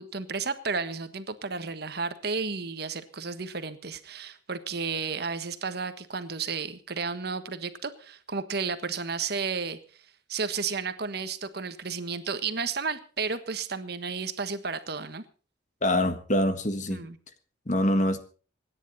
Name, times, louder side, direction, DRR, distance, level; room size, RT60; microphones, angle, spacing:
voice 1, 0.0-9.8 10.3-15.2 16.9-17.2, right 5 dB, 55° right, 10 dB, 1.4 m, -32 dB
voice 2, 15.8-17.0 17.6-18.2, left 1 dB, 40° left, 10 dB, 1.6 m, -25 dB
26.5 x 10.0 x 4.2 m, 0.39 s
head